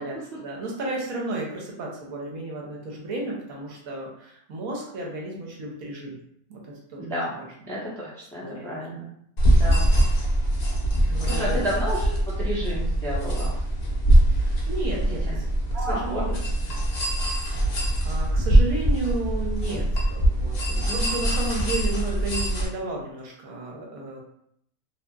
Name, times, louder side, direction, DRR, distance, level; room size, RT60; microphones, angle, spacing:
voice 1, 0.0-6.2 6.5-7.0 7.3-7.5 8.4-9.0 9.9-10.0 10.7-10.8 11.1-11.6 14.3-15.5 16.0-16.4 18.0-24.2, right 2 dB, 70° right, -1 dB, 1.1 m, -33 dB
voice 2, 7.0-7.3 7.7-9.1 9.6-9.9 11.0-13.5 15.3-15.4 15.7-16.4 20.9-21.1, equal, 5° left, -7 dB, 0.4 m, -31 dB
sound 1, 9.4-22.7, right 1 dB, 90° left, 0.3 m, -22 dB
2.7 x 2.6 x 2.2 m, 0.71 s
omnidirectional pair, 1.6 m